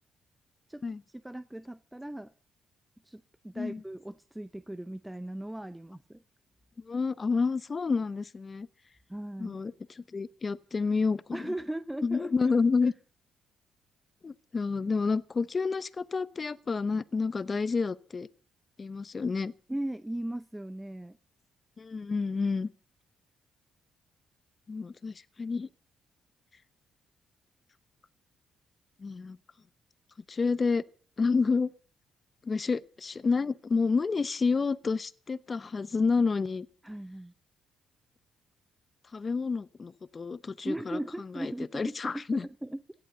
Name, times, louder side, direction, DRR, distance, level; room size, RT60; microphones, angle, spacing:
voice 1, 0.7-2.3 3.0-6.2 9.1-9.6 11.3-12.3 19.7-21.2 36.8-37.3 40.6-42.8, right 1 dB, 5° right, 0.6 m, -38 dB
voice 2, 6.8-8.7 9.4-11.5 12.0-12.9 14.2-18.3 18.8-19.5 21.8-22.7 24.7-25.7 29.0-29.4 30.3-30.8 31.2-31.7 32.4-36.7 39.1-42.5, left 4 dB, 35° left, 0.9 m, -29 dB
17.0 x 11.0 x 6.8 m
cardioid pair, 90°, 0 cm